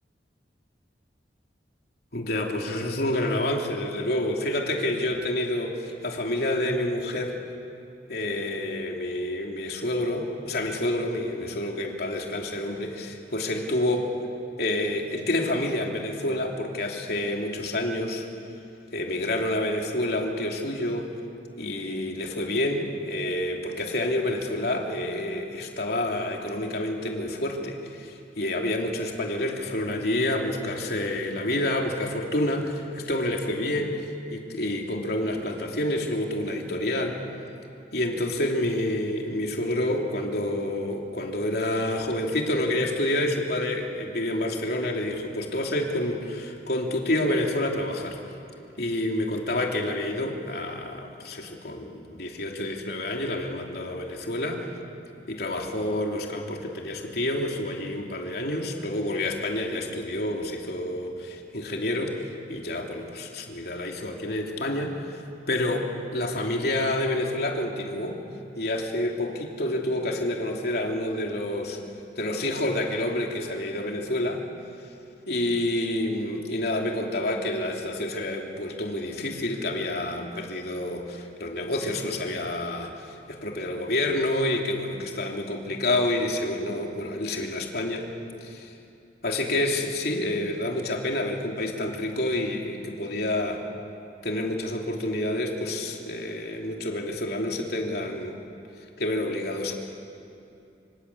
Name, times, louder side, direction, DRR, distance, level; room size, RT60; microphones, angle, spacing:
voice 1, 2.1-7.4 8.1-14.1 14.6-18.2 18.9-21.1 21.6-34.0 34.3-37.2 37.9-48.2 48.8-54.7 55.3-65.2 65.5-68.2 68.5-71.8 72.2-74.4 75.3-88.1 88.4-88.7 89.2-93.6 94.2-98.4 99.0-99.7, left 1 dB, 60° left, 1 dB, 3.2 m, -28 dB
26.5 x 26.0 x 8.6 m, 2.7 s
head